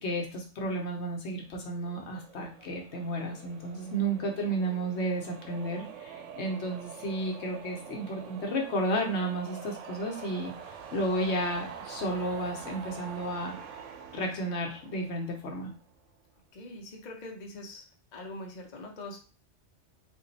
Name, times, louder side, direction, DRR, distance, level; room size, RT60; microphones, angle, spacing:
voice 1, 0.0-10.5 10.9-13.6 14.1-15.7, right 1 dB, 65° left, 1 dB, 1.0 m, -32 dB
sound 1, 1.6-15.9, right 7 dB, 80° right, 0.9 m, -45 dB
voice 2, 16.5-17.9 18.1-19.2, left 1 dB, 45° left, 1 dB, 0.7 m, -43 dB
2.9 x 2.6 x 4.0 m, 0.37 s
omnidirectional pair, 1.3 m